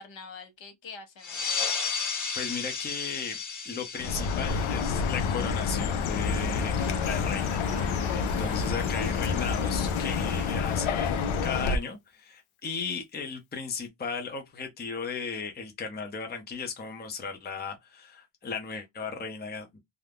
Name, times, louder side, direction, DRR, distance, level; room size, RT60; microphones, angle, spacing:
voice 1, 0.0-1.5, left 4 dB, 65° left, 1.0 m, -46 dB
sound 1, 1.2-6.3, left 5 dB, 40° left, 1.0 m, -34 dB
voice 2, 2.4-3.4 3.6-7.6 8.1-19.8, left 5 dB, 20° left, 0.6 m, -36 dB
Chirp tweet, 4.0-11.8, left 5 dB, 85° left, 0.6 m, -28 dB
sound 2, 6.4-12.0, right 4 dB, 20° right, 0.3 m, -49 dB
2.5 x 2.1 x 3.3 m
wide cardioid pair, 115°, 48 cm